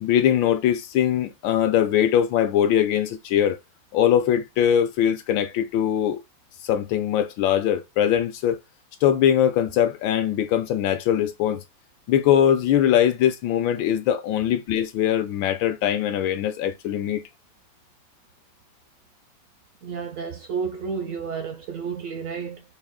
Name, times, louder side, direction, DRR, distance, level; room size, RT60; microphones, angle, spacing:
voice 1, 0.0-3.6 3.9-6.2 6.6-8.6 9.0-11.6 12.1-17.2, left 10 dB, 80° left, 1.4 m, -21 dB
voice 2, 19.8-22.6, right 6 dB, 75° right, 0.7 m, -31 dB
4.7 x 2.3 x 3.5 m
omnidirectional pair, 2.1 m